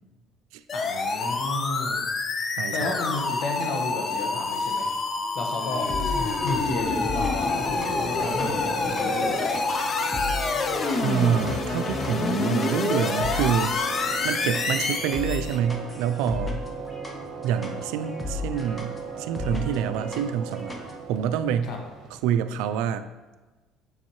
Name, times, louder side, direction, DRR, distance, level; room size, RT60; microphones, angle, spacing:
voice 1, 0.7-2.0 2.7-4.9 5.3-5.9 6.4-9.6 21.6-21.8, left 2 dB, 60° left, 2 dB, 1.3 m, -33 dB
sound 1, 0.7-15.6, left 3 dB, 35° left, 0.6 m, -27 dB
voice 2, 2.6-3.0 11.0-13.8 14.2-16.6 17.4-20.7 21.1-21.7 22.1-23.1, right 9 dB, 85° right, 11 dB, 0.3 m, -27 dB
sound 2, 5.6-20.9, left 3 dB, 20° left, 1.0 m, -37 dB
sound 3, 6.3-22.2, right 6 dB, 65° right, 1.0 m, -38 dB
7.1 x 6.4 x 3.1 m, 1.2 s
cardioid pair, 110°, 0 cm